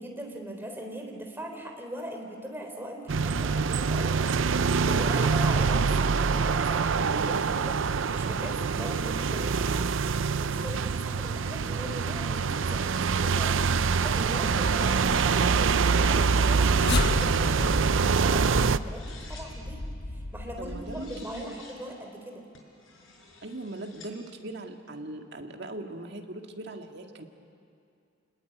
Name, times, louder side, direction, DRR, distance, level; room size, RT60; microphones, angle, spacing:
voice 1, 0.0-9.9 10.4-16.8 17.1-19.8 20.1-22.4, right 1 dB, 10° right, 2 dB, 3.5 m, -40 dB
sound 1, 3.1-18.8, right 5 dB, 75° right, 0.6 m, -25 dB
sound 2, 14.3-15.3 16.3-17.3 18.5-19.5 20.6-21.8 22.5-24.1, left 4 dB, 85° left, 5.6 m, -51 dB
sound 3, 16.2-21.6, left 2 dB, 55° left, 1.1 m, -33 dB
voice 2, 20.6-21.6 23.4-27.2, right 2 dB, 60° right, 4 dB, 1.9 m, -40 dB
28.5 x 20.0 x 9.5 m, 2.5 s
head